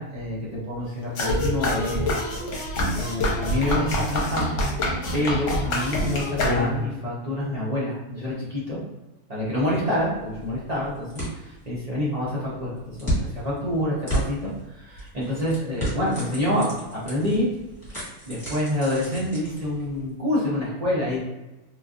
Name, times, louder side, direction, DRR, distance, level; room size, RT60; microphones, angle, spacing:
voice 1, 0.0-2.1 2.9-4.6 5.1-8.8 9.3-17.5 18.3-21.2, left 1 dB, 40° right, -7 dB, 0.6 m, -27 dB
sound 1, 1.2-7.0, left 1 dB, 60° left, 1.0 m, -25 dB
sound 2, 9.9-20.1, right 1 dB, 15° left, 1.1 m, -34 dB
3.1 x 2.3 x 2.4 m, 1.0 s
omnidirectional pair, 1.6 m